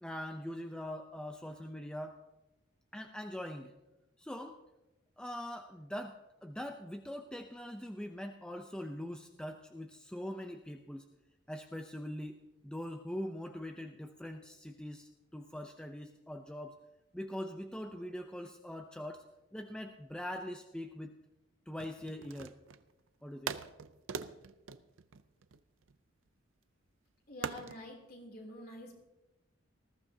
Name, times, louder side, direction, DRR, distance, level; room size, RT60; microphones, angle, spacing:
voice 1, 0.0-2.2 2.9-3.7 4.2-4.6 5.2-11.1 11.5-16.8 17.1-19.2 19.5-21.1 21.7-22.6 23.2-23.6, left 1 dB, 5° left, 5 dB, 0.5 m, -42 dB
sound 1, 21.8-22.9 23.5-25.9 27.4-27.8, right 6 dB, 75° right, 0.5 m, -42 dB
voice 2, 27.3-28.9, left 1 dB, 50° left, 0 dB, 3.0 m, -47 dB
19.5 x 14.5 x 2.8 m, 1.0 s
head